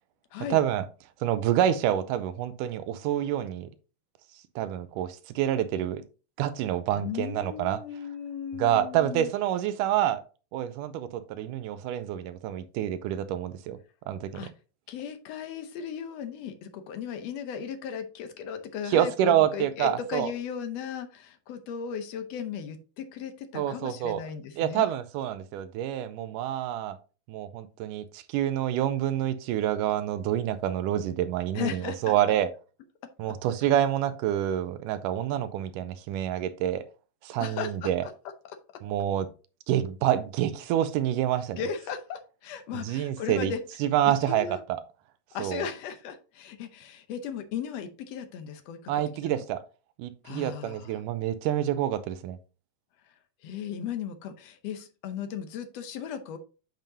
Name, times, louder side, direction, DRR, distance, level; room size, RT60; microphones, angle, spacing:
voice 1, 0.5-0.8 1.2-3.7 4.6-6.0 6.4-7.8 8.6-10.2 10.5-13.8 14.1-14.5 18.9-20.3 23.5-24.2 24.6-27.0 27.3-32.5 33.2-36.8 37.2-38.0 38.8-39.3 39.7-41.6 42.8-43.5 43.8-44.8 45.4-45.7 48.9-49.6 50.0-52.4, right 11 dB, 80° right, 2.1 m, -27 dB
voice 2, 6.9-9.3 14.3-14.5 14.9-24.9 31.5-32.1 37.4-38.1 38.5-38.6 41.6-43.6 44.0-44.6 45.3-48.9 49.2-49.4 50.2-51.0 53.4-56.4, left 7 dB, 70° left, 1.6 m, -36 dB
9.1 x 5.2 x 2.7 m
omnidirectional pair, 3.8 m